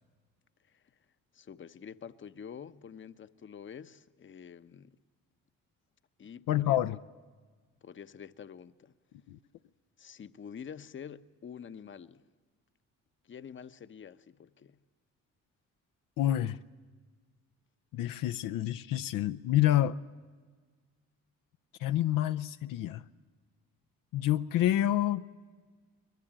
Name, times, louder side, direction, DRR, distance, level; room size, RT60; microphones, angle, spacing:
voice 1, 0.6-1.0 1.3-5.0 6.2-6.8 7.8-8.9 10.0-12.2 13.2-14.8, left 7 dB, 35° left, 0.8 m, -47 dB
voice 2, 6.5-7.0 9.3-9.4 16.2-16.6 17.9-20.0 21.8-23.0 24.1-25.3, left 13 dB, 75° left, 0.6 m, -28 dB
21.5 x 21.0 x 8.8 m
cardioid pair, 80°, 34 cm